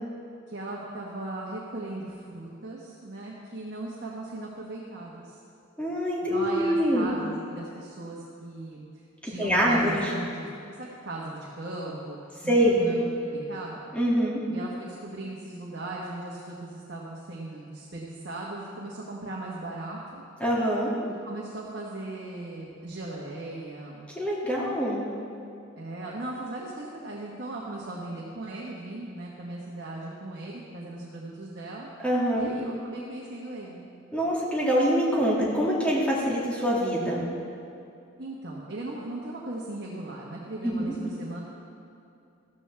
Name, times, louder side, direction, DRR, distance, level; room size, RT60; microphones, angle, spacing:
voice 1, 0.5-5.4 6.3-8.8 9.2-12.2 12.4-13.0 13.3-13.8 14.5-20.2 21.2-24.1 25.8-31.9 32.4-33.8 38.2-41.4, right 2 dB, 55° right, -4 dB, 1.4 m, -38 dB
voice 2, 5.8-7.1 9.2-10.1 12.5-12.8 13.9-14.4 20.4-20.9 24.2-25.1 32.0-32.5 34.1-37.3 40.6-40.9, equal, 5° left, -6 dB, 2.4 m, -25 dB
14.5 x 13.5 x 3.5 m, 2.6 s
head